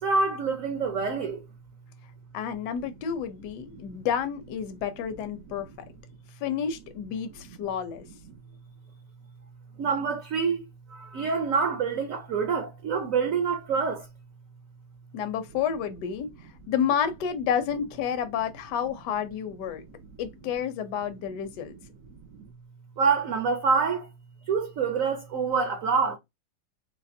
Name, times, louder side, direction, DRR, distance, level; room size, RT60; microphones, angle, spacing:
voice 1, 0.0-1.4 3.8-4.0 9.8-10.6 10.9-14.1 22.3-22.5 23.0-24.1 24.5-26.2, right 5 dB, 65° right, 0.8 m, -26 dB
voice 2, 2.3-5.9 6.4-8.1 15.1-19.8 20.2-21.7, left 8 dB, 70° left, 1.2 m, -30 dB
4.0 x 2.5 x 2.6 m
omnidirectional pair, 2.1 m